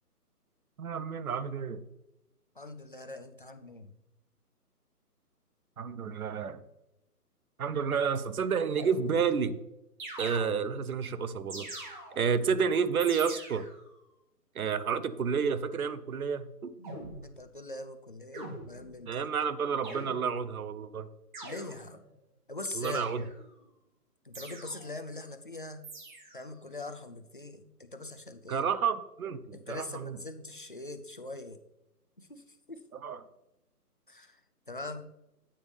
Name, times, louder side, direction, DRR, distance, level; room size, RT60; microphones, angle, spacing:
voice 1, 0.8-1.8 5.8-6.6 7.6-9.6 10.2-11.7 12.1-13.7 14.5-16.7 19.1-21.1 22.7-23.2 28.5-30.2 33.0-33.2, right 6 dB, 65° right, 14 dB, 0.9 m, -30 dB
voice 2, 2.6-4.0 16.8-19.2 21.4-22.0 22.5-23.1 24.2-25.9 26.3-28.6 29.5-31.6 32.2-32.8 34.1-34.4 34.7-35.0, left 2 dB, 35° left, 7 dB, 0.5 m, -42 dB
sound 1, 8.8-9.4 10.0-10.9 11.5-12.4 13.0-13.9 16.8-17.3 18.3-19.0 19.8-20.5 21.3-22.1 22.8-23.5 24.3-25.0 25.8-26.5, right 2 dB, 30° right, 2.0 m, -44 dB
9.2 x 8.9 x 3.3 m, 0.89 s
hypercardioid pair, 160°, 47 cm